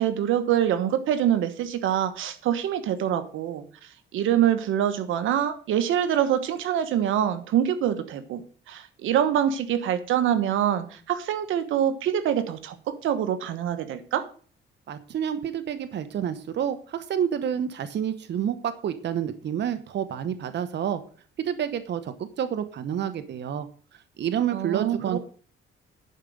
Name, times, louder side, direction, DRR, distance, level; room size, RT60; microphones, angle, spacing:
voice 1, 0.0-8.4 8.7-14.3 24.5-25.2, right 10 dB, 85° right, 11 dB, 1.2 m, -25 dB
voice 2, 14.9-21.0 21.4-25.2, right 9 dB, 60° right, 10 dB, 1.0 m, -29 dB
10.5 x 5.2 x 7.9 m, 0.42 s
cardioid pair, 90°, 20 cm